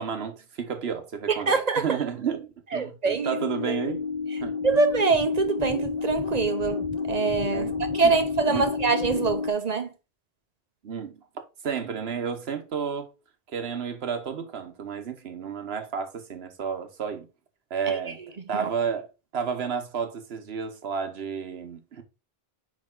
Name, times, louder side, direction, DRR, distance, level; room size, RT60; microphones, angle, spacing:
voice 1, 0.0-4.1 4.4-4.6 7.5-8.2 8.5-8.7 10.8-13.1 13.5-17.3 17.7-18.2 18.5-22.0, right 7 dB, 75° right, 1.2 m, -32 dB
voice 2, 1.5-1.8 2.7-3.3 3.7-3.8 4.6-6.8 7.1-9.9 18.5-18.7, right 4 dB, 45° right, 0.7 m, -24 dB
sound 1, 3.2-9.5, left 4 dB, 40° left, 1.4 m, -30 dB
5.2 x 5.0 x 3.7 m
omnidirectional pair, 1.1 m